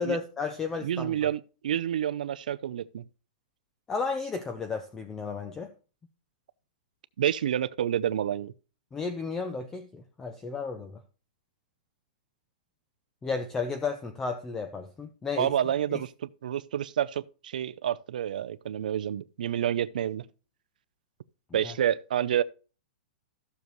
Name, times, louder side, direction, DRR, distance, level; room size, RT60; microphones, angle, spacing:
voice 1, 0.0-1.3 3.9-5.7 8.9-11.0 13.2-15.5 21.6-21.7, left 4 dB, 10° left, 0.5 m, -33 dB
voice 2, 0.8-3.0 7.2-8.5 15.4-20.3 21.5-22.4, right 10 dB, 65° right, 0.6 m, -29 dB
14.5 x 6.8 x 3.1 m
hypercardioid pair, 175°, 5 cm